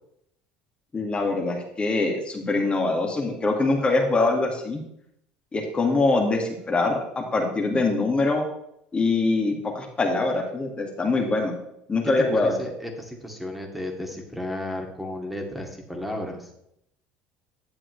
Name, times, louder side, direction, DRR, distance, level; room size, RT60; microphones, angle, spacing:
voice 1, 0.9-4.8 5.5-8.5 8.9-11.5 11.9-12.5, left 3 dB, 25° left, 1 dB, 2.2 m, -23 dB
voice 2, 12.3-16.5, left 1 dB, ahead, 1 dB, 2.6 m, -33 dB
11.0 x 7.4 x 3.3 m, 0.75 s
hypercardioid pair, 80°, 4 cm